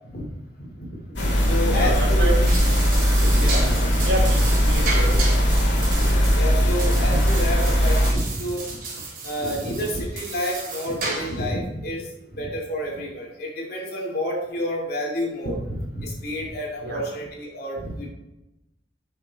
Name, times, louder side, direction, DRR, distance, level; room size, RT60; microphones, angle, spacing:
voice 1, 0.6-2.3 3.2-3.9 5.1-5.5 6.1-8.7 9.2-12.1 12.3-18.1, equal, 55° left, -1 dB, 2.9 m, -29 dB
sound 1, 1.2-8.1, equal, 70° left, 2.6 m, -19 dB
voice 2, 1.7-2.6 4.0-5.2 16.8-17.0, right 1 dB, 65° right, -2 dB, 3.4 m, -29 dB
sound 2, 2.2-11.5, right 3 dB, 45° right, 3.5 m, -33 dB
9.9 x 6.9 x 4.2 m, 0.91 s
head